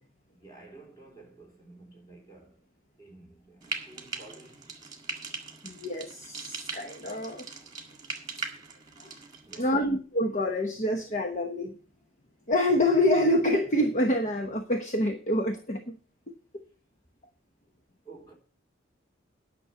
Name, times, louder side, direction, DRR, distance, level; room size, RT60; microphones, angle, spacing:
voice 1, 0.3-2.7 3.0-5.0 9.5-9.9 18.0-18.3, right 3 dB, 20° left, 3.8 m, -51 dB
Frying (food), 3.6-9.6, right 3 dB, 20° right, 1.8 m, -40 dB
voice 2, 5.6-7.5 9.0-9.2 9.6-11.8 12.5-15.9 16.3-16.6, left 1 dB, 35° left, 1.0 m, -27 dB
10.0 x 6.2 x 8.0 m
head